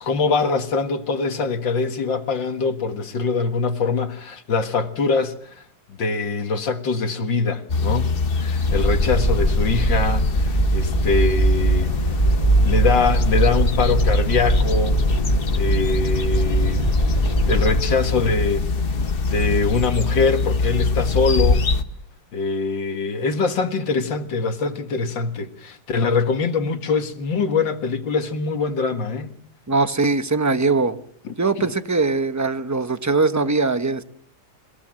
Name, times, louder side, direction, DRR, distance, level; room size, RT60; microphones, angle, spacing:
voice 1, 0.0-5.6 5.9-8.1 8.3-11.9 12.6-15.0 15.5-16.9 17.5-18.7 19.2-21.7 22.3-29.3 31.2-31.7, left 4 dB, 80° left, 2.5 m, -23 dB
sound 1, 7.7-21.8, left 4 dB, 35° left, 1.1 m, -24 dB
sound 2, 8.6-17.8, right 1 dB, 20° left, 1.8 m, -20 dB
voice 2, 29.7-31.0 31.4-34.0, right 3 dB, 15° right, 0.8 m, -21 dB
28.0 x 17.5 x 7.6 m
omnidirectional pair, 2.0 m